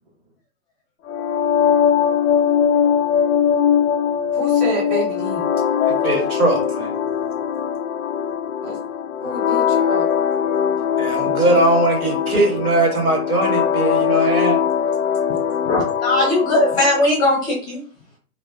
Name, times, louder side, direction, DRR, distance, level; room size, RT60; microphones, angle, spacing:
sound 1, 1.1-17.0, left 8 dB, 70° left, 0.5 m, -20 dB
voice 1, 4.4-5.4 8.6-8.7 9.2-10.0, right 1 dB, 25° right, -4 dB, 1.2 m, -28 dB
voice 2, 6.0-6.9 11.0-14.6, right 2 dB, 70° right, 1 dB, 1.6 m, -20 dB
voice 3, 15.6-17.8, left 2 dB, 10° left, -3 dB, 0.6 m, -19 dB
2.9 x 2.2 x 3.6 m, 0.43 s
figure-of-eight pair, 125°, 45 cm